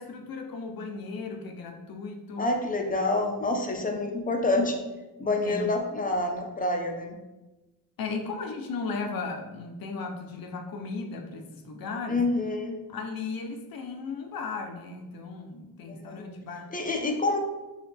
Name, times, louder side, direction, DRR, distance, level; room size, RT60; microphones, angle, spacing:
voice 1, 0.0-2.6 5.4-5.8 8.0-12.2 12.9-16.7, left 4 dB, 80° left, 3 dB, 0.6 m, -36 dB
voice 2, 2.4-4.8 5.2-7.2 12.1-12.8 15.8-16.3 16.7-17.4, left 2 dB, 25° left, 3 dB, 0.5 m, -27 dB
4.8 x 2.4 x 3.4 m, 1.1 s
wide cardioid pair, 135°, 35 cm